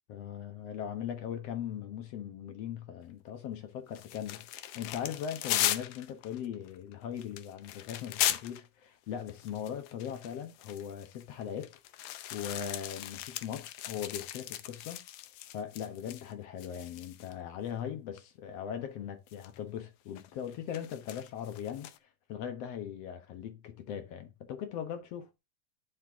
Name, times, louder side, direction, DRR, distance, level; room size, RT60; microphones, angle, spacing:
voice 1, 0.1-11.7 12.3-15.0 15.5-21.9 22.3-25.3, left 9 dB, 60° left, 2.0 m, -39 dB
sound 1, 4.0-8.7 9.2-16.3 16.6-17.3 18.2-18.3 19.3-19.6 20.2-22.0, left 13 dB, 75° left, 1.9 m, -37 dB
12.0 x 4.4 x 3.6 m
omnidirectional pair, 3.6 m